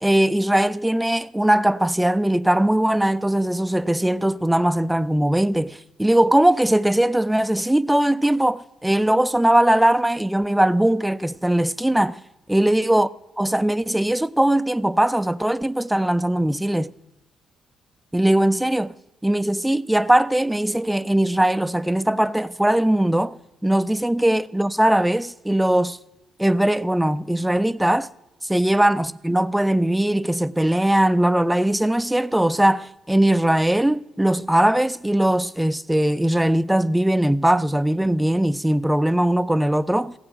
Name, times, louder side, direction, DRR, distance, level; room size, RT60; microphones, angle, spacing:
voice 1, 0.0-12.2 12.5-13.1 13.4-16.9 18.1-18.9 19.2-26.0 26.4-28.1 28.4-40.1, right 1 dB, 5° right, 0.4 m, -20 dB
16.0 x 7.8 x 5.8 m
cardioid pair, 90°, 0 cm